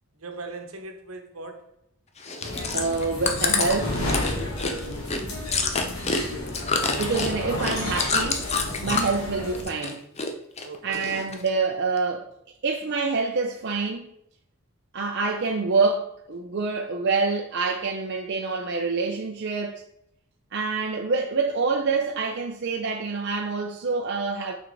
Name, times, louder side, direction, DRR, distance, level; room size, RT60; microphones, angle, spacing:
voice 1, 0.2-1.7 5.4-6.0 10.6-11.1, right 2 dB, 80° right, 1.1 m, -40 dB
Chewing mastication, 2.2-9.2 9.5-10.3 10.6-11.5 12.0-12.1, left 4 dB, 30° left, 0.7 m, -27 dB
sound 1, 2.4-9.6, left 1 dB, 80° left, 2.0 m, -32 dB
voice 2, 2.7-4.0 7.0-8.5 8.8-10.0 10.8-12.3 12.6-14.1 14.9-19.8 20.5-24.5, right 4 dB, 55° right, 0.6 m, -26 dB
6.2 x 4.5 x 4.6 m
head